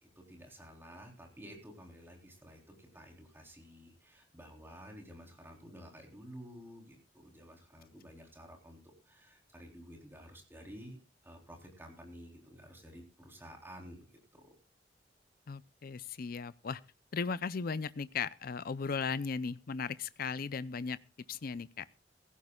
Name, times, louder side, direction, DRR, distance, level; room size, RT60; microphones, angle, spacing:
voice 1, 0.0-11.0 11.2-14.5, equal, 15° right, 1 dB, 3.7 m, -52 dB
voice 2, 15.5-16.8 17.1-21.0 21.3-21.9, left 5 dB, 55° left, 17 dB, 0.5 m, -37 dB
18.0 x 16.0 x 2.3 m, 0.30 s
head